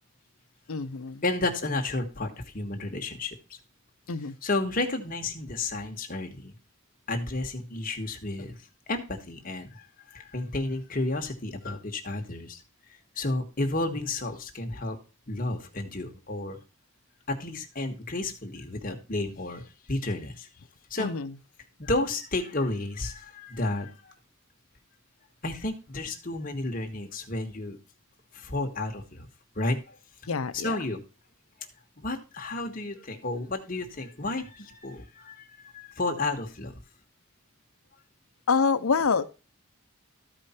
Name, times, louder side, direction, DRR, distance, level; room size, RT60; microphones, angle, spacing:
voice 1, 0.7-1.2 4.1-4.4 21.0-21.3 30.3-30.8 38.5-39.2, left 5 dB, 85° left, 0.7 m, -26 dB
voice 2, 1.2-3.4 4.4-6.5 7.1-8.6 8.9-9.8 10.1-12.6 13.2-15.0 15.3-16.6 17.3-19.6 19.9-20.5 20.9-21.1 21.8-24.1 25.4-27.8 28.3-29.3 29.5-30.0 30.6-31.0 32.0-36.7, left 2 dB, 40° left, 1.4 m, -31 dB
13.5 x 5.0 x 4.3 m
head